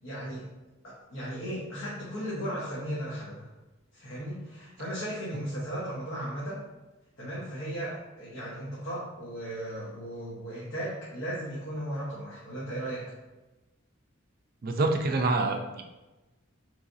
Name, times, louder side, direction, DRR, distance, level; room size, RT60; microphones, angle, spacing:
voice 1, 0.0-0.5 0.8-3.5 3.9-6.6 7.2-13.0, equal, 70° left, -8 dB, 1.1 m, -36 dB
voice 2, 14.6-15.8, right 2 dB, 45° right, 4 dB, 0.4 m, -26 dB
4.8 x 3.2 x 2.6 m, 1.1 s
head